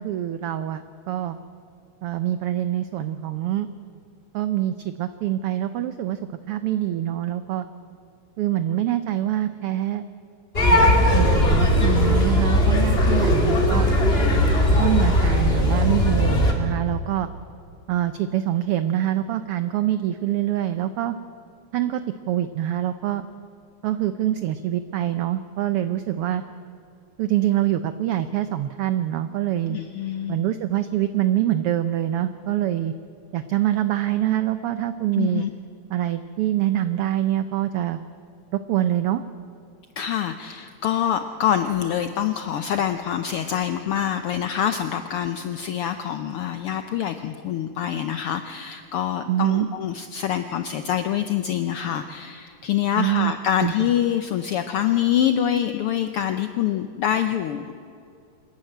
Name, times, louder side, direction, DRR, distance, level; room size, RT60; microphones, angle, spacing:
voice 1, 0.0-1.4 2.0-3.7 4.3-6.2 6.5-7.6 8.4-10.0 10.7-10.9 11.1-13.9 14.8-17.3 17.9-21.1 21.7-22.0 22.3-23.2 23.8-26.4 27.2-29.8 30.3-32.9 33.3-35.5 35.9-38.0 38.5-39.2 49.3-49.7 53.0-53.3 53.6-53.7, right 12 dB, 85° right, 12 dB, 1.2 m, -25 dB
sound 1, 10.5-16.5, left 1 dB, 20° left, 2.0 m, -18 dB
voice 2, 29.7-30.4 35.2-35.5 40.0-57.7, left 10 dB, 80° left, 9 dB, 1.2 m, -25 dB
26.5 x 11.0 x 9.1 m, 2.5 s
omnidirectional pair, 3.3 m